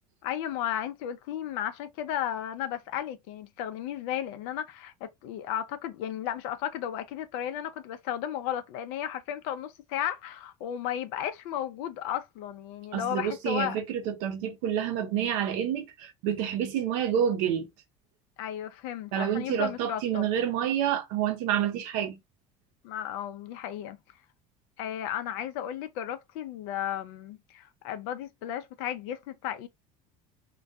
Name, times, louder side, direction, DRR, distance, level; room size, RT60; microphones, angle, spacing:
voice 1, 0.2-13.8 18.4-20.3 22.8-24.0 24.8-29.7, left 10 dB, 60° left, 0.6 m, -34 dB
voice 2, 12.9-17.7 19.1-22.2, right 9 dB, 65° right, 0.6 m, -28 dB
2.2 x 2.1 x 2.7 m
hypercardioid pair, 65°, 19 cm